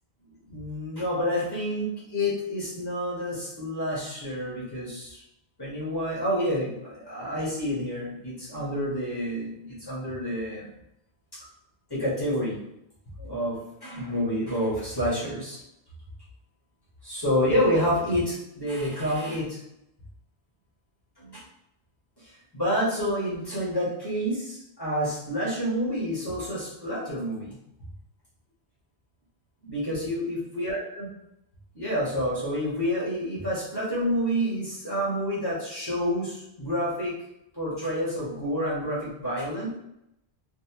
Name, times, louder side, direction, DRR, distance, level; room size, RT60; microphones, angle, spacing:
voice 1, 0.5-5.2 5.6-10.7 11.9-12.6 13.2-15.6 17.0-19.6 21.2-21.4 22.2-27.6 29.6-31.1 31.7-37.2 37.5-39.7, equal, 20° left, -8 dB, 1.5 m, -28 dB
2.9 x 2.6 x 2.9 m, 0.82 s
omnidirectional pair, 1.1 m